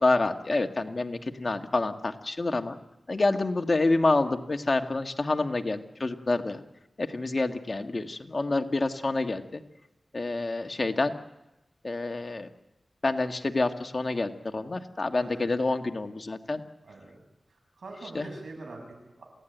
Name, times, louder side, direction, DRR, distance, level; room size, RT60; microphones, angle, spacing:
voice 1, 0.0-2.8 3.1-6.6 7.0-9.6 10.1-11.1 11.8-12.5 13.0-16.6 18.1-18.3, left 2 dB, 50° left, 6 dB, 1.7 m, -27 dB
voice 2, 15.1-15.5 16.8-17.1 17.5-19.2, right 2 dB, 85° right, 3 dB, 7.5 m, -44 dB
27.5 x 17.0 x 9.3 m, 0.96 s
cardioid pair, 50°, 0 cm